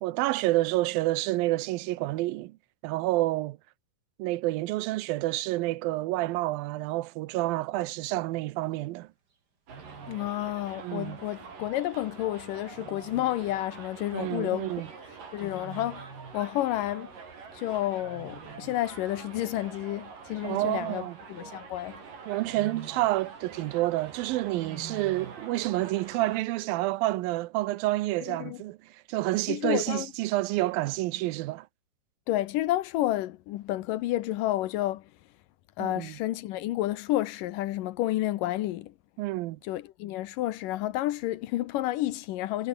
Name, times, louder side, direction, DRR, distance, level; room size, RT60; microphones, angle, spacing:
voice 1, 0.0-2.6 2.8-3.6 4.2-9.1 10.8-11.2 14.1-14.9 20.4-21.2 22.3-31.7 35.8-36.2 39.2-39.6, right 18 dB, 80° right, 2.5 m, -29 dB
Wild animals, 8.1-8.5 9.7-10.4 12.7-13.7 15.4-16.5 18.0-18.9 20.5-21.6 22.3-23.2 24.5-25.5, right 5 dB, 30° right, 2.7 m, -46 dB
Subway metro underground, 9.7-26.4, right 5 dB, 65° right, 6.3 m, -46 dB
voice 2, 10.1-14.8 15.3-17.1 17.5-22.1 28.3-28.6 29.5-30.1 32.3-35.1 35.8-38.9 39.6-42.7, left 15 dB, 75° left, 2.4 m, -30 dB
omnidirectional pair, 4.1 m